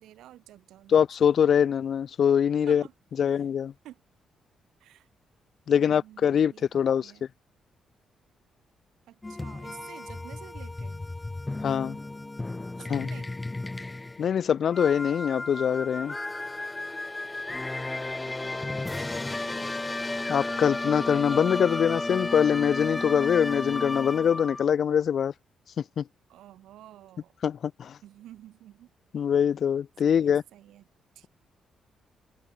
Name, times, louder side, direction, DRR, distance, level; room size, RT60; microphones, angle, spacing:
voice 1, 0.0-1.1 2.7-2.9 3.2-3.5 3.8-4.0 4.8-5.1 5.7-7.3 9.1-11.1 12.8-13.3 18.3-18.7 19.4-19.9 26.3-27.3 28.0-28.9 30.0-30.8 31.2-31.3, right 13 dB, 85° right, 7.2 m, -50 dB
voice 2, 0.9-2.8 3.2-3.7 5.7-7.1 11.6-12.0 12.9-13.1 14.2-16.1 19.4-19.5 20.3-25.3 25.8-26.0 27.4-28.0 29.1-30.4, left 8 dB, 60° left, 0.6 m, -24 dB
sound 1, 9.2-24.7, left 2 dB, 20° left, 4.1 m, -33 dB
cardioid pair, 75°, 0 cm